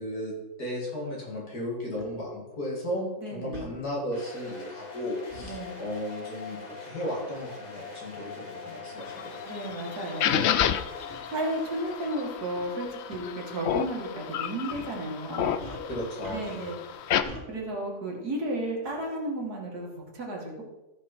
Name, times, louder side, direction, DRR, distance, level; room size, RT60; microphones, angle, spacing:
voice 1, 0.0-9.4 15.9-16.7, equal, 65° left, -3 dB, 3.4 m, -35 dB
sound 1, 2.0-2.1 3.5-3.7 5.3-5.6 7.3-7.5 8.4-8.5 9.3-9.4 9.6-9.8 11.1-11.2 12.6-12.8 13.1-13.2 14.7-15.0 15.6-16.7 17.2-17.5, equal, 30° right, 2.2 m, -43 dB
voice 2, 3.2-3.7 5.4-5.8 9.5-10.4 11.3-15.5 16.3-16.7 17.1-20.6, right 1 dB, 65° right, -1 dB, 2.6 m, -33 dB
sound 2, 4.1-17.0, left 4 dB, 25° left, 1.5 m, -44 dB
sound 3, 9.0-17.2, left 9 dB, 80° left, 0.6 m, -31 dB
14.5 x 6.2 x 4.4 m, 1.1 s
omnidirectional pair, 1.8 m